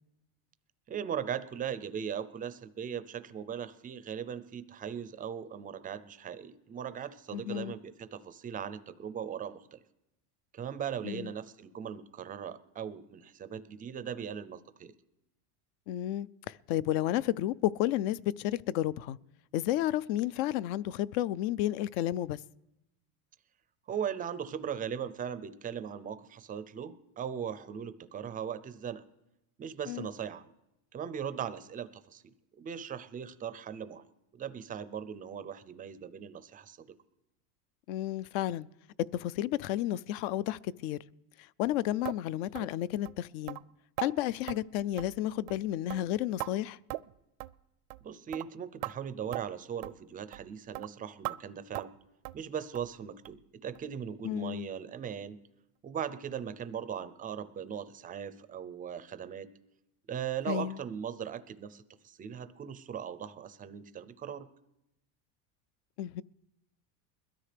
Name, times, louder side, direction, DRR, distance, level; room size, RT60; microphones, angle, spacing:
voice 1, 0.9-9.8 10.5-14.9 23.9-29.0 29.6-30.5 30.9-34.0 34.3-36.8 48.0-51.9 52.3-55.4 55.8-59.5 60.1-64.5, right 8 dB, 20° right, 0.4 m, -39 dB
voice 2, 7.3-7.7 11.0-11.3 15.9-19.2 19.5-22.4 29.9-30.1 37.9-38.7 39.1-41.0 41.6-43.6 44.0-46.8 54.2-54.7 60.5-60.8 66.0-66.2, left 13 dB, 65° left, 0.5 m, -32 dB
sound 1, 42.1-42.2 42.6-42.7 43.1-43.2 43.5-43.6 44.0-44.1 44.5-44.6 45.0-45.2 45.5-45.6 45.9-46.5 46.9-47.1 47.4-47.6 47.9-48.1 48.3-48.5 48.8-48.9 49.3-49.4 49.8-50.0 50.3-50.5 50.7-50.9 51.2-51.4 51.7-52.0 52.3-52.4 52.8-52.9 53.3-53.4 53.8-53.9 54.3-54.4, right 20 dB, 70° right, 0.5 m, -39 dB
21.5 x 13.0 x 3.3 m
supercardioid pair, 125°, 47 cm